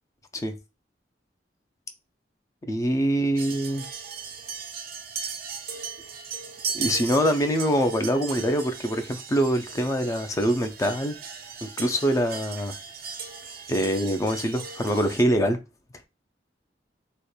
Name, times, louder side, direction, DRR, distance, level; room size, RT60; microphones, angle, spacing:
voice 1, 2.7-3.8 6.7-11.2 11.6-12.7 13.7-15.6, equal, 20° left, 0.3 m, -24 dB
sound 1, 3.4-15.2, right 6 dB, 55° right, 0.4 m, -37 dB
2.9 x 2.1 x 2.2 m
head